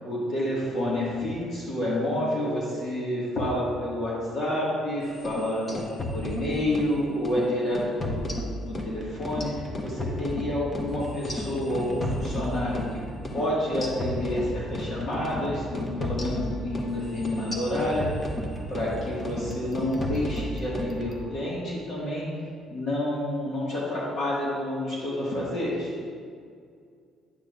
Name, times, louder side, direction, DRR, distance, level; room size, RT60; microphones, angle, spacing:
voice 1, 0.0-5.7 6.1-8.2 8.6-13.0 13.3-18.3 18.7-22.3 22.7-25.9, left 1 dB, 50° left, -6 dB, 1.7 m, -29 dB
sound 1, 5.1-6.9 7.2-7.4 7.7-8.9 9.2-12.9 13.2-13.4 13.7-14.9 15.2-15.4 15.7-18.9 19.2-19.5 19.7-20.9, left 1 dB, 25° left, 0.9 m, -33 dB
sound 2, 8.7-21.9, left 1 dB, 5° right, 0.8 m, -40 dB
9.8 x 8.6 x 2.5 m, 2.2 s
cardioid pair, 150°, 0 cm